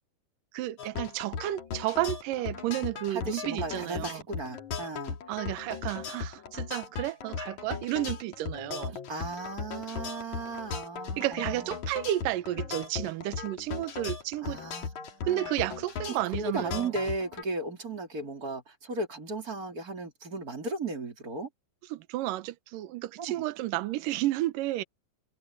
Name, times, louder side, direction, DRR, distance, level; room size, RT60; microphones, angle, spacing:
voice 1, 0.5-4.2 5.3-9.0 11.2-14.6 15.2-16.9 21.9-24.8, right 15 dB, 80° right, 1.9 m, -32 dB
sound 1, 0.8-17.4, left 6 dB, 45° left, 3.0 m, -37 dB
voice 2, 3.1-5.2 9.1-11.7 14.4-15.8 16.1-21.5 23.2-23.4, right 3 dB, 20° right, 3.5 m, -36 dB
omnidirectional pair, 5.4 m